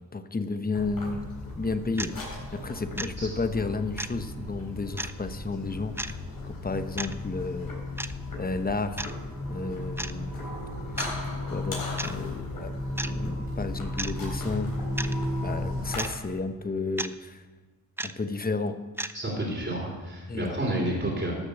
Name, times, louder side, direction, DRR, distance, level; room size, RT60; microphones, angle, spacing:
voice 1, 0.1-1.2 1.6-2.1 2.5-6.2 6.4-7.7 8.4-9.0 9.5-10.4 11.5-12.7 13.0-14.7 15.4-17.4 18.0-18.8 20.3-20.6, left 3 dB, 25° left, 10 dB, 0.9 m, -32 dB
sound 1, 0.7-16.0, left 1 dB, 75° left, 4.0 m, -35 dB
sound 2, 2.0-2.1 3.0-3.1 4.0-4.1 5.0-5.1 6.0-6.1 7.0-7.1 8.0-8.1 9.0-9.1 10.0-10.1 11.0-11.1 12.0-12.2 13.0-13.1 14.0-14.1 15.0-15.1 16.0-16.1 17.0-17.1 18.0-18.1 19.0-19.1, right 1 dB, 5° right, 0.4 m, -32 dB
voice 2, 19.1-21.3, right 1 dB, 30° right, -3 dB, 3.3 m, -30 dB
13.0 x 6.8 x 6.8 m, 1.3 s
cardioid pair, 60°, 36 cm